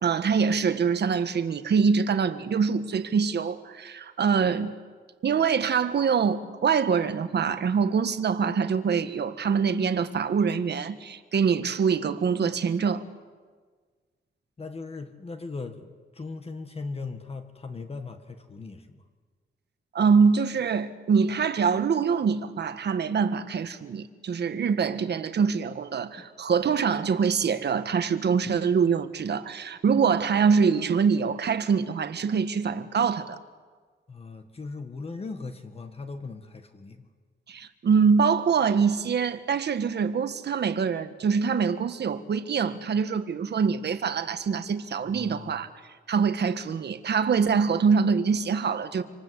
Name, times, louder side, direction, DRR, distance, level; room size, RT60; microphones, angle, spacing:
voice 1, 0.0-4.7 5.2-13.0 19.9-33.4 37.5-45.7 46.1-49.0, right 6 dB, 55° right, 1.5 m, -24 dB
voice 2, 14.6-19.1 26.2-26.3 34.1-37.1 45.0-45.6, left 4 dB, 30° left, 1.7 m, -39 dB
26.5 x 26.5 x 8.2 m
wide cardioid pair, 160°, 20 cm